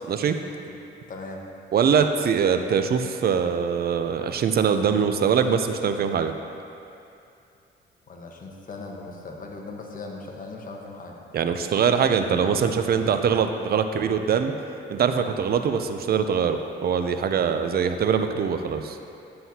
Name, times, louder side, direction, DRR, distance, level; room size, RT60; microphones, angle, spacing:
voice 1, 0.1-0.4 1.7-6.3 11.3-14.5 14.9-19.0, right 7 dB, 50° right, 7 dB, 0.6 m, -23 dB
voice 2, 1.1-1.4 8.1-11.1, left 3 dB, 45° left, 0 dB, 1.2 m, -38 dB
11.0 x 7.6 x 2.8 m, 2.7 s
cardioid pair, 90°, 20 cm